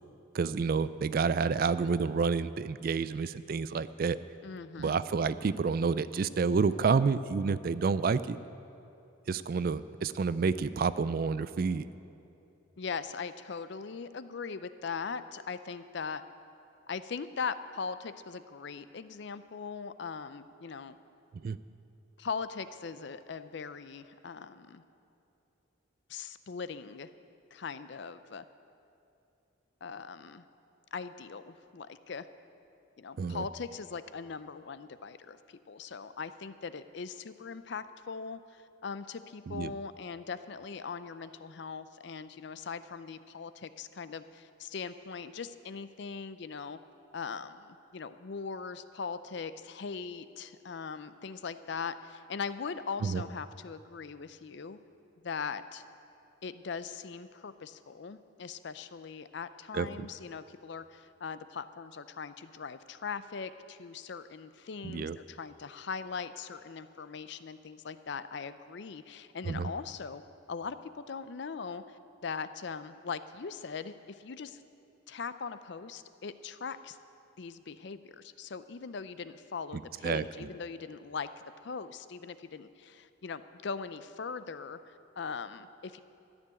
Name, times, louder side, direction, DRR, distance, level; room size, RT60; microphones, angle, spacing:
voice 1, 0.3-4.2 4.8-8.4 9.3-11.9 21.4-21.6 33.2-33.4 39.5-39.7 53.0-53.2 59.7-59.9 64.8-65.2 69.5-69.7 80.0-80.5, right 5 dB, 45° right, 15 dB, 0.3 m, -29 dB
voice 2, 4.4-5.0 12.8-16.2 16.9-21.0 22.2-24.8 26.1-27.1 27.5-28.5 29.8-30.4 30.9-32.3 33.0-46.8 47.1-54.8 55.2-55.8 56.4-70.2 70.5-74.6 75.1-77.0 77.4-81.3 81.6-86.0, left 5 dB, 55° left, 13 dB, 0.4 m, -40 dB
13.0 x 6.9 x 9.6 m, 2.7 s
head